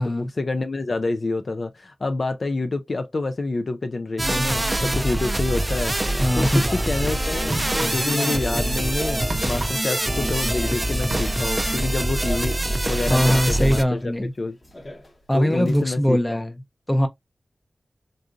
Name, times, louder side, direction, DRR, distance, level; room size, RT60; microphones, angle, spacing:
voice 1, 0.0-14.0 14.4-14.6 15.3-16.4, left 3 dB, 65° left, 0.3 m, -27 dB
sound 1, 4.2-13.8, right 1 dB, 20° right, 0.3 m, -24 dB
sound 2, 5.7-9.6 9.9-11.5 12.2-13.3 13.7-14.1 14.6-16.0, left 1 dB, 45° left, 1.0 m, -37 dB
voice 2, 6.2-6.6 13.1-14.3 15.3-16.5 16.9-17.1, equal, 20° left, 0.6 m, -21 dB
sound 3, 7.5-8.3 8.6-10.7 10.9-11.7, right 2 dB, 80° right, 0.6 m, -34 dB
3.8 x 2.4 x 2.5 m
wide cardioid pair, 60°, 0 cm